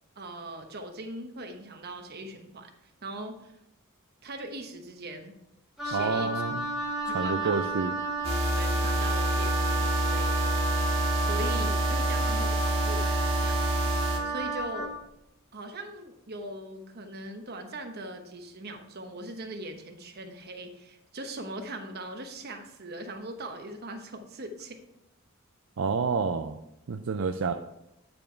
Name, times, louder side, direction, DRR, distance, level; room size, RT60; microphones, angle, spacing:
voice 1, 0.2-2.7 3.0-3.6 4.2-5.3 5.8-6.4 7.1-7.7 8.5-10.5 11.2-13.9 14.2-14.9 15.5-24.8, right 1 dB, 50° right, 5 dB, 1.1 m, -40 dB
Wind instrument woodwind instrument, 5.8-14.9, right 3 dB, ahead, 1.5 m, -32 dB
voice 2, 5.9-6.7 7.1-7.9 25.8-26.6 26.9-27.5, right 5 dB, 65° right, 6 dB, 0.4 m, -28 dB
sound 1, 8.2-14.2, equal, 30° right, 1.8 m, -28 dB
9.2 x 5.2 x 4.5 m, 0.84 s
head